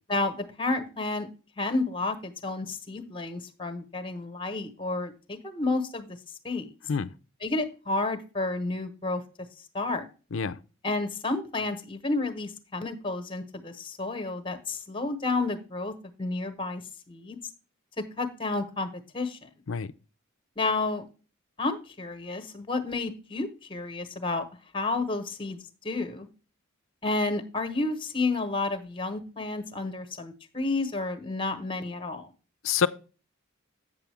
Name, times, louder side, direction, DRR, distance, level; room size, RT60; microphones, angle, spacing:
voice 1, 0.1-1.3 1.6-6.2 6.4-6.7 7.4-9.2 9.7-10.1 10.8-16.8 17.1-17.4 18.0-19.5 20.6-21.1 21.6-24.4 24.7-26.3 27.0-32.3, left 3 dB, 25° left, 1.1 m, -31 dB
voice 2, 6.9-7.1 10.3-10.6 19.7-19.9 32.6-32.9, left 6 dB, 65° left, 0.5 m, -26 dB
8.3 x 7.2 x 3.4 m
head